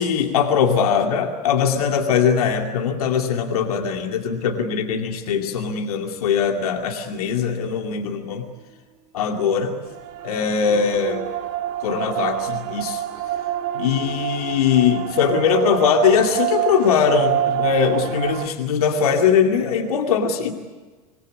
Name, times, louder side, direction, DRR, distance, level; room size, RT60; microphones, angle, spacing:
voice 1, 0.0-8.5 9.1-9.8 10.2-11.2 11.8-13.0 13.7-20.5, left 6 dB, 65° left, 4 dB, 2.4 m, -21 dB
sound 1, 9.9-18.5, right 12 dB, 45° right, 2.0 m, -27 dB
26.0 x 20.0 x 9.7 m, 1.3 s
figure-of-eight pair, 80°, 21 cm